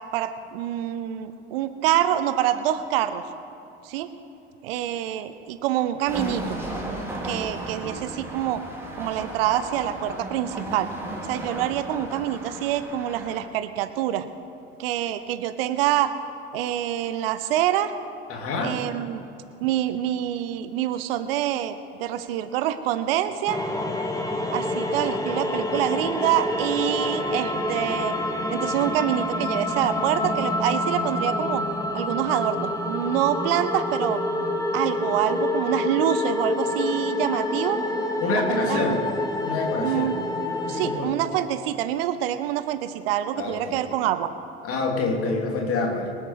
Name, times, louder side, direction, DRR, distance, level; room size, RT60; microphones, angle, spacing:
voice 1, 0.1-3.2 3.8-4.1 4.6-6.6 7.2-8.6 9.0-10.9 11.3-14.3 14.8-16.1 16.5-17.9 18.6-19.2 19.6-23.6 24.5-28.2 28.5-31.6 31.9-34.2 34.7-37.8 38.5-39.0 39.8-40.2 40.7-44.3, right 12 dB, 65° right, 12 dB, 0.8 m, -26 dB
sound 1, 6.1-13.4, right 1 dB, 5° right, 3.3 m, -35 dB
voice 2, 18.3-18.8 38.2-39.0 39.4-40.1 40.6-41.1 43.4-43.8 44.6-46.1, left 3 dB, 45° left, 1 dB, 3.0 m, -27 dB
sound 2, 23.5-41.0, left 1 dB, 10° left, 1.7 m, -27 dB
24.5 x 8.4 x 4.9 m, 2.9 s
figure-of-eight pair, 60°, 32 cm